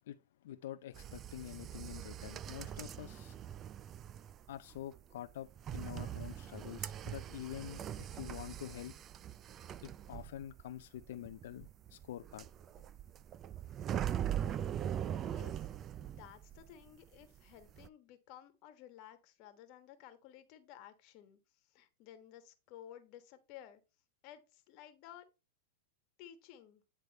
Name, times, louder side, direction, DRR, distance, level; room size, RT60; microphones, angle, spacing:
voice 1, 0.4-3.4 4.5-8.9 9.8-12.5, left 12 dB, 70° left, 0.4 m, -47 dB
sound 1, 0.9-16.9 17.1-17.9, right 10 dB, 30° right, 0.3 m, -42 dB
voice 2, 15.3-15.6 16.0-21.4 21.7-23.8 24.2-25.3 26.2-26.8, left 11 dB, 50° left, 1.3 m, -55 dB
9.5 x 3.4 x 4.1 m
hypercardioid pair, 130°, 0 cm